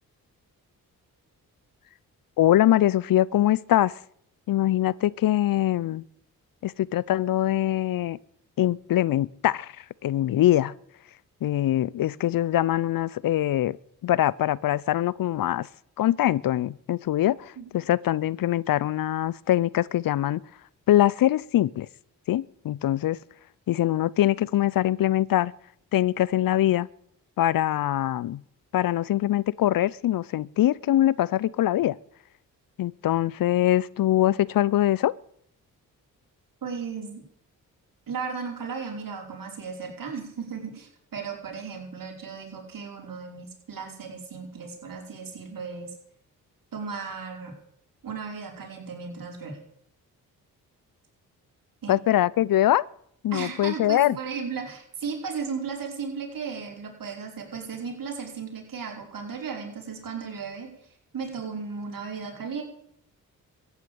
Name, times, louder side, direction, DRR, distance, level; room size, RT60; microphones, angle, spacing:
voice 1, 2.4-4.0 4.5-6.0 6.6-8.2 8.6-10.7 11.4-13.8 14.0-15.7 16.0-20.4 20.9-21.9 22.3-23.2 23.7-25.5 25.9-26.9 27.4-28.4 28.7-32.0 32.8-35.1 51.9-52.9 53.2-54.2, left 13 dB, 65° left, 0.6 m, -23 dB
voice 2, 36.6-37.2 38.1-46.0 46.7-47.6 48.0-49.6 51.8-52.0 53.3-60.7 61.1-62.6, right 5 dB, 60° right, 5.2 m, -35 dB
14.5 x 9.5 x 8.6 m
supercardioid pair, 55°, 38 cm